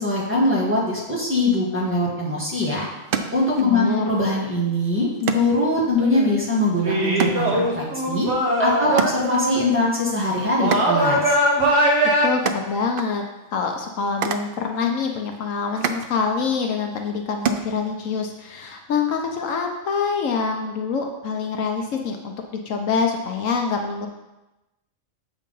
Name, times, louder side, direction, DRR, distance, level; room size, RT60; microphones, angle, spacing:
voice 1, 0.0-2.9 3.3-8.3 8.6-11.4, left 1 dB, 10° right, -6 dB, 1.6 m, -22 dB
sound 1, 2.2-18.3, right 6 dB, 75° right, 0.5 m, -33 dB
voice 2, 3.6-4.0 12.2-13.2 13.5-22.3 22.6-24.1, left 5 dB, 70° left, 3 dB, 1.1 m, -25 dB
sound 2, 5.9-6.4 6.8-9.6 10.6-12.3, right 1 dB, 55° right, 1.3 m, -21 dB
7.3 x 3.8 x 5.3 m, 0.99 s
omnidirectional pair, 1.4 m